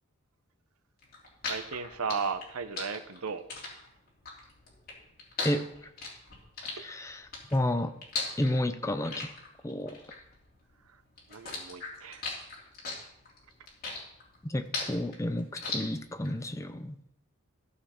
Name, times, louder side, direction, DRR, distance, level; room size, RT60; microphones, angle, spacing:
sound 1, 1.0-10.9 11.2-16.3, left 3 dB, 40° left, 3.1 m, -38 dB
voice 1, 1.5-3.4 6.7-6.9 10.9-11.0 11.3-12.3, right 5 dB, 80° right, 11 dB, 0.8 m, -35 dB
voice 2, 5.4-5.9 6.8-7.9 8.4-9.3 9.6-10.1 14.4-17.0, left 1 dB, 15° left, 9 dB, 0.5 m, -31 dB
14.5 x 6.9 x 4.3 m, 0.79 s
head